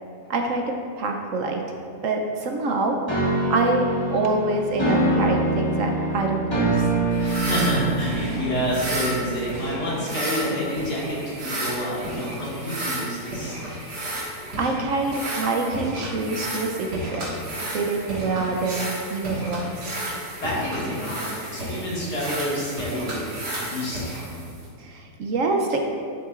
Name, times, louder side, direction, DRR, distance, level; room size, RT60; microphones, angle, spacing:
voice 1, 0.3-1.6 2.0-3.0 3.5-6.9 13.9-14.3 14.6-17.3 17.7-19.8 24.8-25.9, right 3 dB, 65° right, 2 dB, 0.9 m, -26 dB
sound 1, 3.1-9.9, right 2 dB, 15° left, 1.5 m, -25 dB
voice 2, 7.1-13.6 20.4-23.2 23.6-24.2, equal, 85° left, -7 dB, 2.6 m, -28 dB
sound 2, 7.1-24.7, right 1 dB, 85° right, 2.3 m, -32 dB
11.0 x 7.2 x 2.4 m, 2.3 s
omnidirectional pair, 1.7 m